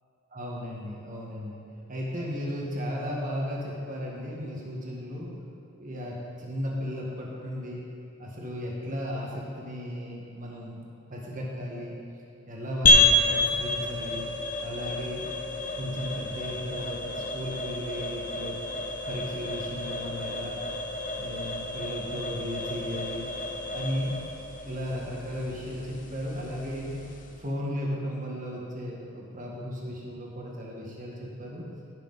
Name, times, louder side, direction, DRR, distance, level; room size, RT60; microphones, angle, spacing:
voice 1, 0.3-1.6 1.9-5.3 5.8-7.8 8.2-10.8 11.1-11.9 12.5-14.3 14.6-15.3 15.7-18.6 19.1-20.6 21.2-23.3 23.7-24.1 24.6-26.9 27.4-31.6, equal, 35° right, -3 dB, 1.7 m, -35 dB
sound 1, 12.8-27.5, left 2 dB, 35° left, 0.8 m, -29 dB
15.5 x 6.6 x 4.1 m, 2.6 s
head